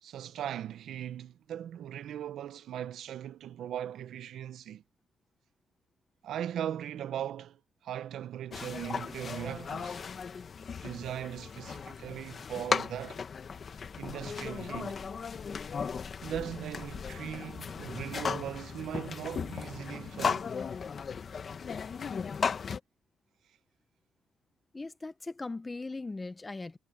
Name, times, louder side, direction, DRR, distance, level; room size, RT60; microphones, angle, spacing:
voice 1, 0.0-4.8 6.2-10.0 10.8-13.2 14.0-15.0 16.2-20.4, right 10 dB, 75° right, 1.0 m, -39 dB
sound 1, 8.5-22.8, left 6 dB, 45° left, 1.5 m, -36 dB
voice 2, 24.7-26.8, left 3 dB, 20° left, 1.2 m, -39 dB
cardioid pair, 90°, 0 cm